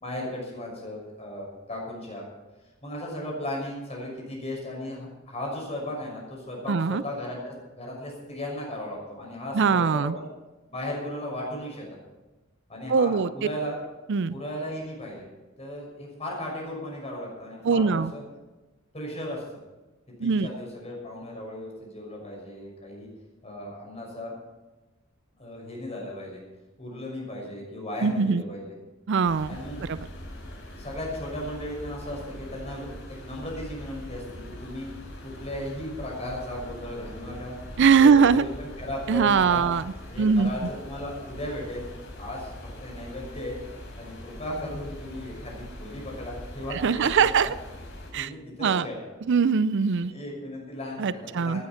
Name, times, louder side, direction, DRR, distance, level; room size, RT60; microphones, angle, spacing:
voice 1, 0.0-2.3 2.8-10.3 10.7-11.9 12.7-13.8 14.3-15.3 15.6-18.2 18.9-19.4 20.2-23.1 23.4-24.3 25.4-26.4 26.8-28.7 29.5-29.8 30.8-32.9 33.2-34.9 35.2-37.6 38.0-39.7 40.1-41.9 42.2-42.5 42.8-43.6 44.0-47.5 48.1-49.0 50.1-51.7, left 1 dB, 30° left, -1 dB, 6.0 m, -36 dB
voice 2, 6.7-7.0 9.5-10.2 12.9-13.3 14.1-14.3 17.6-18.1 20.2-20.5 28.0-28.4 29.1-30.0 37.8-38.4 39.1-39.8 40.2-40.5 46.8-47.5 48.1-48.3 48.6-48.9 49.3-50.1 51.0-51.6, right 5 dB, 60° right, 16 dB, 0.5 m, -21 dB
sound 1, 29.3-48.1, left 1 dB, 60° left, 4.2 m, -42 dB
17.5 x 9.8 x 5.8 m, 1.1 s
head